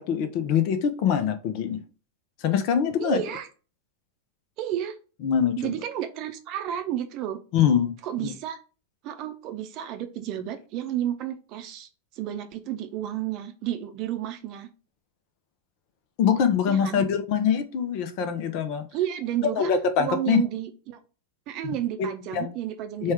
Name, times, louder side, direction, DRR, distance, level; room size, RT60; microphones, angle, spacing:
voice 1, 0.0-1.8 2.4-3.2 5.2-5.7 7.5-7.9 8.2-8.3 16.2-18.8 19.6-20.4 21.6-21.7 22.0-22.5 23.0-23.1, left 7 dB, 45° left, 0.6 m, -24 dB
voice 2, 3.0-3.5 4.6-5.0 5.6-7.4 8.0-8.6 9.0-14.7 16.7-17.0 18.9-19.7 20.0-21.0 21.5-23.1, right 11 dB, 40° right, 0.6 m, -31 dB
4.2 x 2.3 x 4.7 m
figure-of-eight pair, 90°, 0 cm